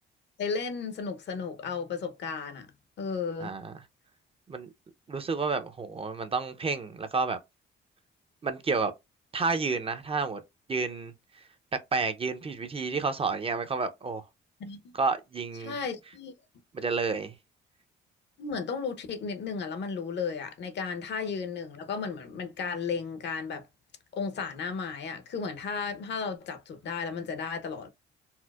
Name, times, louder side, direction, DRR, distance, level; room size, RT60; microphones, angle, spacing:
voice 1, 0.4-2.7 3.0-3.5 14.6-15.0 15.6-16.3 18.4-23.6 24.1-27.9, left 5 dB, 65° left, 0.7 m, -34 dB
voice 2, 3.4-3.7 4.5-4.7 5.1-7.4 8.4-8.9 9.3-10.4 10.7-11.1 11.9-14.2 14.9-15.8 16.7-17.3, right 4 dB, 30° right, 0.5 m, -30 dB
4.3 x 2.0 x 2.3 m
cardioid pair, 90°, 20 cm